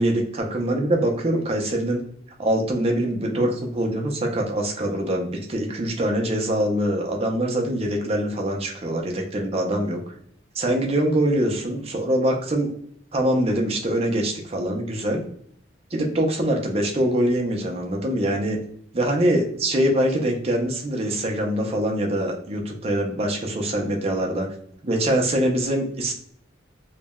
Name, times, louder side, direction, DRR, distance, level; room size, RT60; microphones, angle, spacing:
voice 1, 0.0-2.0 2.4-10.0 10.6-12.7 13.1-15.2 15.9-18.6 18.9-24.5 24.8-26.1, right 1 dB, 30° right, 1 dB, 0.5 m, -23 dB
3.2 x 2.1 x 2.2 m, 0.65 s
head